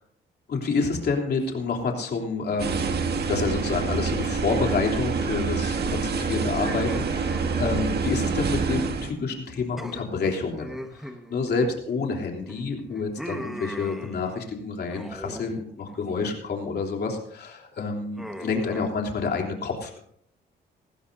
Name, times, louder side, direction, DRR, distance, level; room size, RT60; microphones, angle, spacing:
voice 1, 0.5-3.0 3.3-20.0, left 4 dB, 55° left, 1 dB, 3.3 m, -28 dB
sound 1, 2.6-9.1, right 5 dB, 55° right, 1.6 m, -27 dB
sound 2, 6.6-9.1 9.3-9.5 9.8-12.1 12.5-14.5 14.9-15.5 15.8-16.3 16.8-17.2 18.2-18.9, equal, ahead, 1.5 m, -40 dB
19.5 x 15.5 x 2.7 m, 0.66 s
cardioid pair, 90°, 20 cm